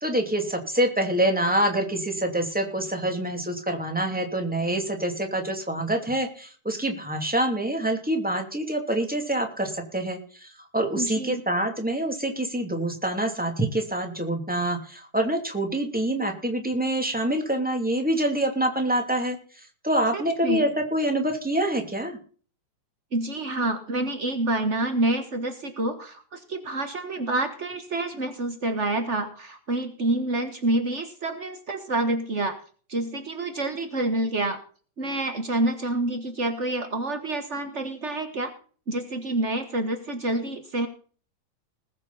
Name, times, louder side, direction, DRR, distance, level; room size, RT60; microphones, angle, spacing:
voice 1, 0.0-19.4 19.8-22.2, right 1 dB, 5° right, 4 dB, 2.2 m, -26 dB
voice 2, 10.9-11.4 20.1-20.7 23.1-32.5 32.9-34.6 35.0-38.5 38.9-40.9, right 2 dB, 80° right, 7 dB, 0.6 m, -28 dB
20.0 x 8.3 x 4.1 m, 0.42 s
omnidirectional pair, 3.7 m